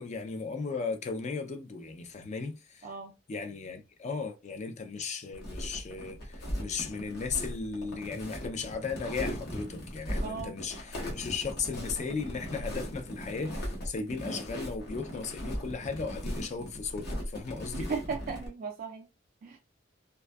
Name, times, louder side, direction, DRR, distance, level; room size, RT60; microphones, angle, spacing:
voice 1, 0.0-2.9 3.3-17.9, left 4 dB, 35° left, 0.4 m, -36 dB
voice 2, 2.8-3.1 10.2-10.6 17.7-19.1 19.4-19.6, right 5 dB, 45° right, 0.3 m, -36 dB
sound 1, 5.3-18.5, equal, 60° left, 0.9 m, -38 dB
2.5 x 2.3 x 2.2 m
head